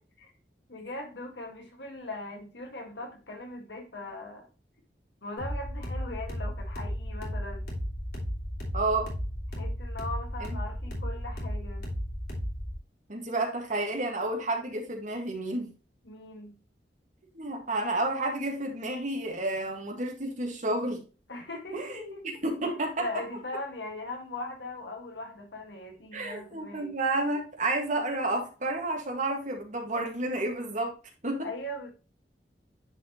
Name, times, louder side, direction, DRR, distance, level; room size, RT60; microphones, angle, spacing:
voice 1, 0.7-4.5 5.2-7.7 9.5-11.9 16.0-16.5 21.3-22.2 23.0-26.9 31.4-31.9, left 2 dB, 75° left, 3 dB, 1.8 m, -40 dB
sound 1, 5.4-12.8, equal, 60° left, 2.8 m, -34 dB
voice 2, 8.7-9.1 13.1-15.7 17.3-21.0 21.7-23.1 26.1-30.9 31.2-31.5, right 2 dB, 45° right, 2 dB, 1.8 m, -30 dB
9.8 x 4.4 x 3.0 m, 0.34 s
head